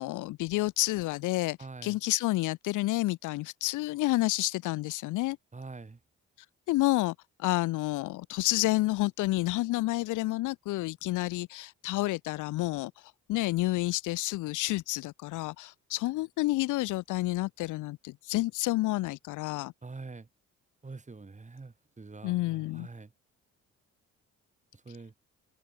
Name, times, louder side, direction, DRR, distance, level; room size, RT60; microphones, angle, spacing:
voice 1, 0.0-1.6 1.8-5.4 6.7-12.9 13.3-19.7 22.2-22.9, left 18 dB, 85° left, 0.6 m, -29 dB
voice 2, 1.6-2.0 5.5-6.0 19.8-20.3 20.8-23.1 24.7-25.1, right 3 dB, 25° right, 5.1 m, -45 dB
open air
cardioid pair, 90°, 30 cm